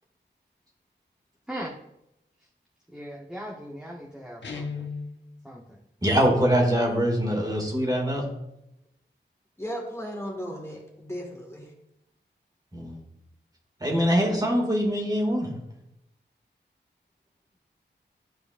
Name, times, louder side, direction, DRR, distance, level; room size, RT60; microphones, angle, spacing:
voice 1, 2.9-4.9 5.4-5.8, equal, 5° right, -3 dB, 1.0 m, -39 dB
Guitar, 4.4-5.2, left 5 dB, 75° left, 1.0 m, -34 dB
voice 2, 6.0-8.3 12.7-13.0 13.8-15.5, equal, 20° right, -1 dB, 2.1 m, -23 dB
voice 3, 9.6-11.7, equal, 15° left, -1 dB, 1.7 m, -35 dB
12.0 x 4.8 x 2.5 m, 0.84 s
wide cardioid pair, 65°, 19 cm